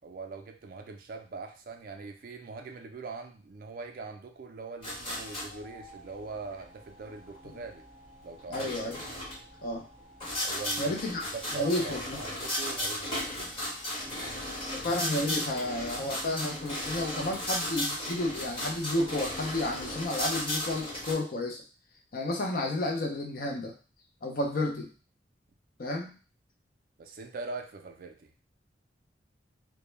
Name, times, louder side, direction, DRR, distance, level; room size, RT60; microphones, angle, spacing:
voice 1, 0.0-7.8 8.2-8.7 10.4-11.0 11.3-13.6 27.0-28.3, right 4 dB, 50° right, 4 dB, 0.3 m, -42 dB
sound 1, 4.8-21.1, left 1 dB, 30° left, 1.0 m, -36 dB
voice 2, 8.5-9.0 9.6-9.8 10.8-11.3 11.5-12.2 14.8-21.6 22.1-23.7 24.2-24.9 25.8-26.2, left 1 dB, 50° left, 1 dB, 0.5 m, -31 dB
2.1 x 2.1 x 3.1 m, 0.36 s
head